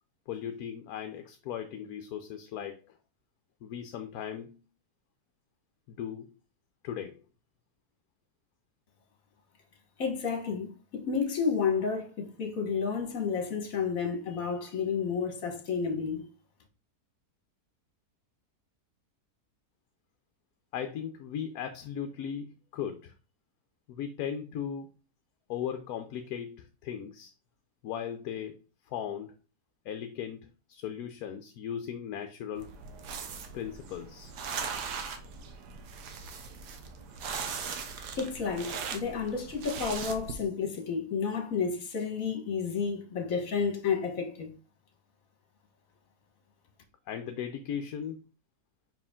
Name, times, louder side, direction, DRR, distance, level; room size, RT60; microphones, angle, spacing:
voice 1, 0.3-3.0 3.6-4.6 5.9-6.3 6.8-7.2 20.7-23.1 23.9-24.9 25.5-27.3 27.8-28.6 28.9-29.3 29.8-32.7 33.5-34.3 47.1-48.2, left 8 dB, 70° left, 1.1 m, -37 dB
voice 2, 10.0-10.7 10.9-16.3 38.2-44.5, left 6 dB, 55° left, 1.7 m, -31 dB
sound 1, 32.6-40.3, right 6 dB, 80° right, 1.4 m, -39 dB
5.7 x 4.7 x 3.6 m
omnidirectional pair, 1.7 m